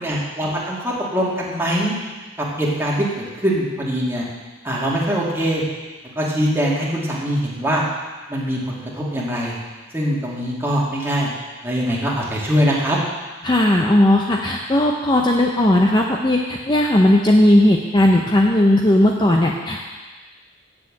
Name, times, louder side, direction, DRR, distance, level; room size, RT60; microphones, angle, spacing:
voice 1, 0.0-2.0 2.6-4.3 4.6-5.6 6.2-7.9 8.3-9.6 9.9-11.3 11.6-13.0, equal, 10° right, -5 dB, 2.2 m, -22 dB
voice 2, 13.4-19.8, left 1 dB, 20° left, 0 dB, 0.7 m, -16 dB
8.8 x 7.3 x 7.3 m, 1.3 s
head